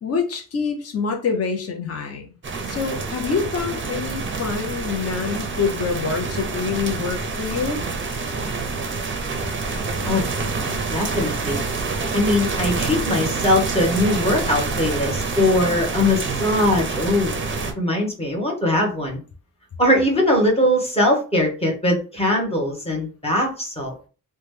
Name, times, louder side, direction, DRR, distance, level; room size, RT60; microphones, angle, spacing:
voice 1, 0.0-2.3 2.7-7.8, left 5 dB, 40° left, 3 dB, 0.6 m, -26 dB
sound 1, 2.4-17.7, right 4 dB, 35° right, 0.5 m, -27 dB
voice 2, 10.9-11.6 12.1-17.3 17.8-19.2 19.8-24.1, left 1 dB, 15° left, -1 dB, 0.9 m, -21 dB
2.9 x 2.2 x 3.2 m, 0.36 s
wide cardioid pair, 160°, 37 cm